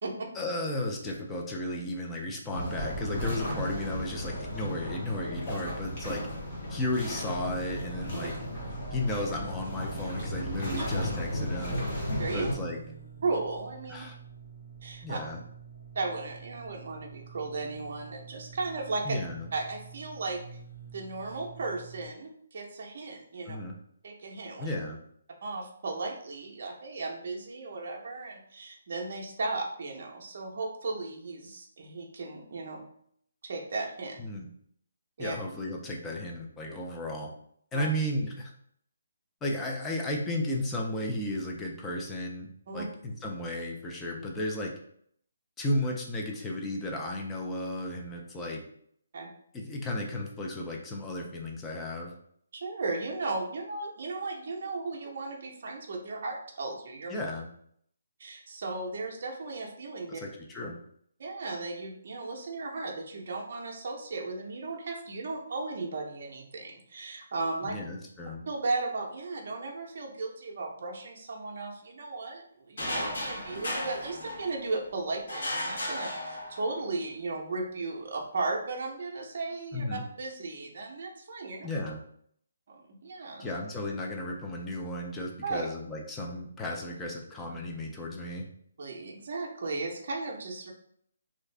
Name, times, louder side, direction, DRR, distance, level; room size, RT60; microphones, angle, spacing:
voice 1, 0.3-6.2 6.7-8.3 8.9-11.8 12.3-12.8 13.9-14.2 15.0-15.4 19.0-19.5 23.5-23.7 24.6-25.0 34.2-34.5 35.2-37.3 37.7-38.5 39.4-42.5 42.7-44.7 45.6-48.6 49.5-52.1 57.1-57.5 60.1-60.8 67.6-68.4 79.7-80.0 81.6-82.0 83.4-88.5, left 1 dB, 10° left, -1 dB, 0.3 m, -34 dB
sound 1, 2.5-12.5, equal, 30° left, 0.9 m, -35 dB
sound 2, 7.2-22.1, right 4 dB, 85° left, 1.2 m, -47 dB
voice 2, 13.2-14.0 14.8-15.2 15.9-19.2 19.5-20.4 20.9-23.6 24.0-24.7 25.4-32.8 33.4-34.2 35.2-35.3 37.7-37.9 42.7-42.9 49.1-49.3 52.5-57.2 58.2-60.2 61.2-67.8 68.5-81.7 82.7-83.5 85.4-85.7 88.8-90.7, right 3 dB, 45° right, 0 dB, 0.6 m, -35 dB
sound 3, 72.8-74.8 75.3-76.8, left 1 dB, 60° left, 1.2 m, -35 dB
2.6 x 2.4 x 3.2 m, 0.67 s
hypercardioid pair, 175°, 0 cm